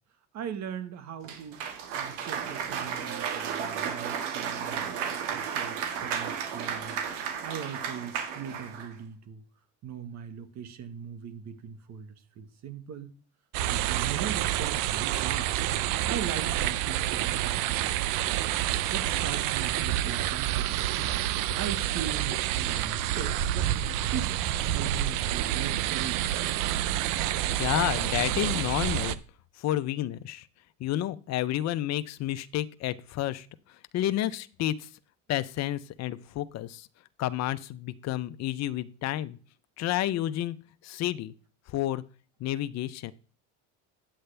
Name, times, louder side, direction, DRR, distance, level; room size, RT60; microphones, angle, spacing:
voice 1, 0.3-1.6 1.9-4.8 5.3-7.0 7.4-9.4 9.8-13.1 13.6-15.5 16.1-18.4 18.9-20.8 21.5-24.4 24.7-26.3, right 8 dB, 50° right, 10 dB, 1.6 m, -39 dB
Cheering / Applause, 1.2-8.9, right 7 dB, 90° right, 2.1 m, -33 dB
sound 1, 13.5-29.2, right 13 dB, 65° right, 0.7 m, -28 dB
voice 2, 27.6-29.2 29.6-30.4 30.8-33.5 33.9-34.9 35.3-36.9 37.2-39.4 39.8-40.6 40.8-41.3 41.7-42.0 42.4-43.1, left 13 dB, 50° left, 13 dB, 0.7 m, -30 dB
10.5 x 7.9 x 3.4 m, 0.37 s
supercardioid pair, 110°, 35 cm